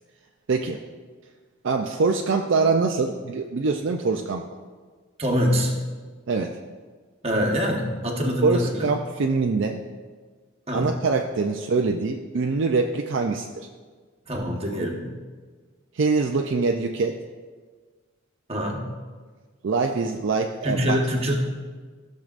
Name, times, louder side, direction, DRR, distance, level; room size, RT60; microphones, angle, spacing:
voice 1, 0.5-0.8 1.6-4.4 6.3-6.6 8.4-9.8 10.7-13.7 15.9-17.2 19.6-21.0, right 4 dB, 60° right, 3 dB, 0.4 m, -24 dB
voice 2, 5.2-5.7 7.2-8.9 10.7-10.9 14.3-15.1 18.5-18.8 20.6-21.3, equal, 30° right, 0 dB, 1.2 m, -24 dB
15.0 x 6.6 x 2.5 m, 1.5 s
head